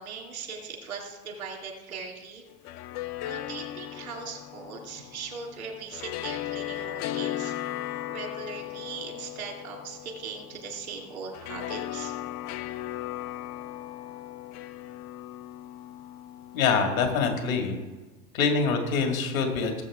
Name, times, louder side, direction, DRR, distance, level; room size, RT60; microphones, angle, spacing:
voice 1, 0.0-2.4 3.2-7.5 8.1-12.1, right 5 dB, 85° right, 0 dB, 3.4 m, -39 dB
sound 1, 2.5-17.7, left 14 dB, 40° left, 0.6 m, -37 dB
voice 2, 16.5-17.8 18.3-19.8, left 5 dB, 75° left, 3 dB, 2.3 m, -25 dB
18.0 x 7.7 x 3.7 m, 1.2 s
hypercardioid pair, 85°, 41 cm